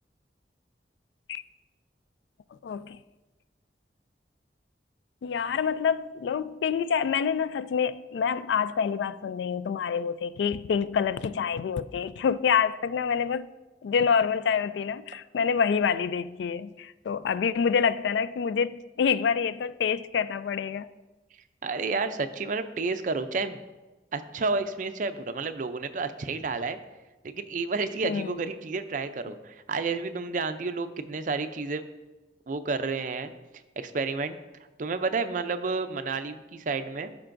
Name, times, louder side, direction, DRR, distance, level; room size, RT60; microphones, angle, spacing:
voice 1, 2.6-3.0 5.2-13.5 13.8-20.9 28.0-28.4, left 6 dB, 85° left, 0.3 m, -27 dB
voice 2, 21.6-23.6 24.1-26.8 27.3-31.8 32.5-33.3 33.8-34.4 34.8-37.2, right 4 dB, 45° right, 0.5 m, -30 dB
13.5 x 5.8 x 2.6 m
head